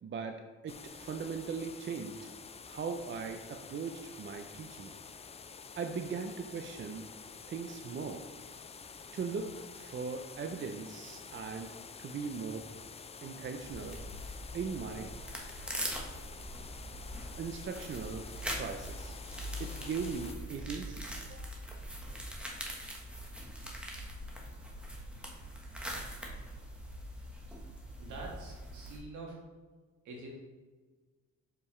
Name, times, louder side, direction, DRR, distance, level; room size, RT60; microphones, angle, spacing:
voice 1, 0.0-2.3 2.7-5.0 5.8-7.1 7.5-8.3 9.1-11.7 12.0-12.7 13.2-14.0 14.5-15.1 17.4-19.2 19.6-21.5, right 5 dB, 40° right, 5 dB, 0.5 m, -39 dB
sound 1, 0.7-20.3, left 5 dB, 20° left, 0.3 m, -49 dB
sound 2, 13.6-29.0, equal, 5° right, 1.3 m, -42 dB
voice 2, 28.0-29.4 30.0-30.3, right 2 dB, 75° right, -2 dB, 2.0 m, -45 dB
6.8 x 5.6 x 3.2 m, 1.4 s
cardioid pair, 90°, 30 cm